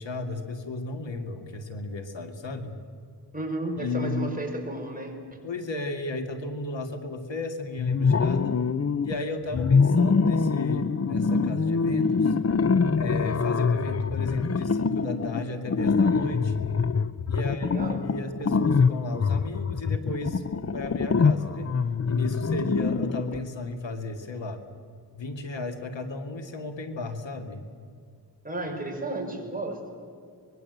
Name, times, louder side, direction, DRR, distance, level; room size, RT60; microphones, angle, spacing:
voice 1, 0.0-2.8 3.8-4.3 5.4-8.6 9.0-12.3 13.0-16.7 17.3-20.4 20.7-21.7 22.1-24.6 25.2-27.7, left 2 dB, 85° left, 5 dB, 2.3 m, -34 dB
voice 2, 3.3-5.2 17.3-18.1 28.4-29.9, right 2 dB, 20° right, 1 dB, 5.7 m, -33 dB
sound 1, 7.8-9.1 9.5-23.4, left 5 dB, 35° left, 0.7 m, -24 dB
24.5 x 22.0 x 8.1 m, 2.3 s
wide cardioid pair, 95°, 43 cm